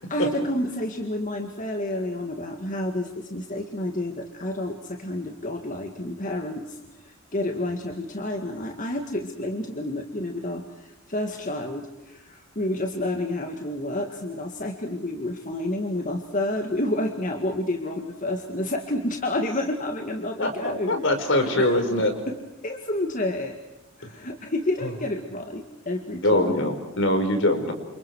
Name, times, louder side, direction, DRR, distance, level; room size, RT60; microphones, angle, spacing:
voice 1, 0.1-21.1 21.4-21.7 22.3-22.4 22.6-23.6 24.0-26.7, left 1 dB, 40° left, 4 dB, 2.1 m, -30 dB
voice 2, 20.4-22.1 24.8-24.9 26.2-27.7, left 1 dB, 65° left, 6 dB, 5.2 m, -23 dB
29.5 x 28.0 x 4.8 m, 1.0 s
head